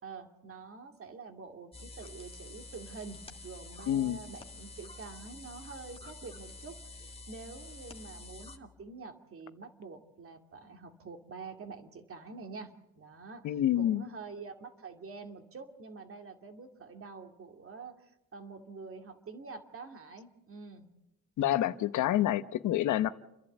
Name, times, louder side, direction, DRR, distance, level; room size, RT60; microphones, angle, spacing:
voice 1, 0.0-20.9, right 4 dB, 45° right, 2.5 m, -47 dB
sound 1, 1.7-8.6, left 2 dB, 20° left, 1.8 m, -48 dB
voice 2, 3.9-4.2 13.4-14.0 21.4-23.1, left 12 dB, 75° left, 0.9 m, -28 dB
30.0 x 11.5 x 7.9 m
cardioid pair, 90°, 30 cm